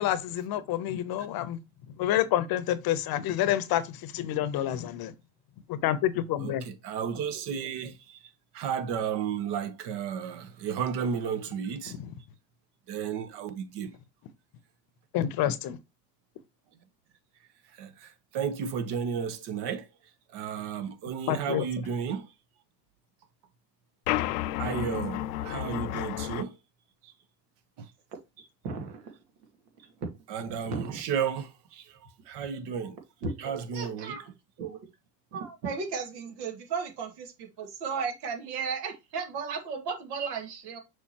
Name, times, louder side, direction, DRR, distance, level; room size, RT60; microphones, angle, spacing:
voice 1, 0.0-1.6 2.0-5.1 5.7-6.6 11.9-12.1 15.1-15.8 21.3-21.7, left 12 dB, 45° left, 0.9 m, -28 dB
voice 2, 6.4-8.2 8.5-11.9 12.9-13.9 17.7-19.9 20.3-22.3 24.6-26.5 27.0-27.1 27.8-27.9 30.3-32.0 32.3-33.0 33.4-34.2, right 7 dB, 55° right, 1.2 m, -33 dB
sound 1, 24.1-26.4, left 14 dB, 75° left, 0.6 m, -31 dB
voice 3, 28.1-29.1 29.8-29.9 30.5-31.0 33.2-34.3 34.6-34.8 35.3-40.8, right 5 dB, 75° right, 2.3 m, -35 dB
6.6 x 5.0 x 2.9 m
supercardioid pair, 100°, 49 cm